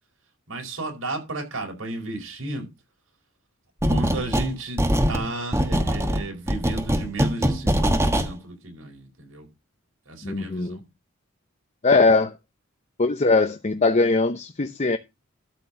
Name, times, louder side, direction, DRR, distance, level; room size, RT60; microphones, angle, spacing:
voice 1, 0.5-2.7 3.8-4.8 5.1-9.5 10.1-10.9, right 2 dB, 80° right, 4.7 m, -33 dB
sound 1, 3.8-4.5 4.8-8.3, equal, 15° right, 1.3 m, -22 dB
voice 2, 10.2-10.8 11.8-12.3 13.0-15.0, left 3 dB, 35° left, 0.8 m, -20 dB
12.5 x 4.5 x 6.9 m
head